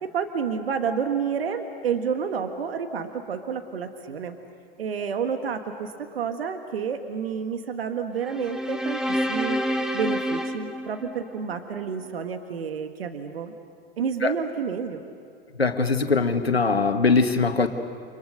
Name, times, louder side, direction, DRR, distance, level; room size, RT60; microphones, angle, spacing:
voice 1, 0.0-4.4 4.8-9.6 9.9-13.5 14.0-15.0, right 6 dB, 75° right, 7 dB, 1.7 m, -29 dB
sound 1, 8.2-11.6, equal, ahead, 1.6 m, -28 dB
voice 2, 15.6-17.7, left 4 dB, 90° left, 7 dB, 1.8 m, -21 dB
30.0 x 28.5 x 6.6 m, 2.1 s
figure-of-eight pair, 90°, 30 cm